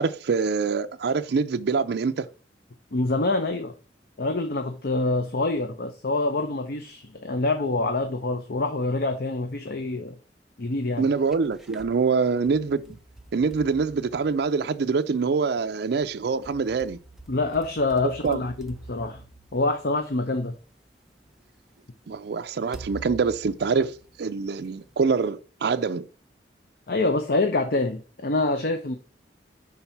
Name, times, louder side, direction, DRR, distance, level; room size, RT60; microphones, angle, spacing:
voice 1, 0.0-2.3 11.0-13.0 13.3-17.0 18.2-18.4 22.1-26.1, right 5 dB, 65° right, 0.4 m, -25 dB
voice 2, 2.9-3.7 4.2-10.2 10.6-11.1 17.3-19.2 19.5-20.5 26.9-29.0, left 2 dB, 60° left, 0.7 m, -26 dB
sound 1, 11.0-11.9 12.5-14.9 16.0-20.4 21.3-21.4 22.7-24.6, right 2 dB, ahead, 0.6 m, -46 dB
5.7 x 3.9 x 5.8 m
head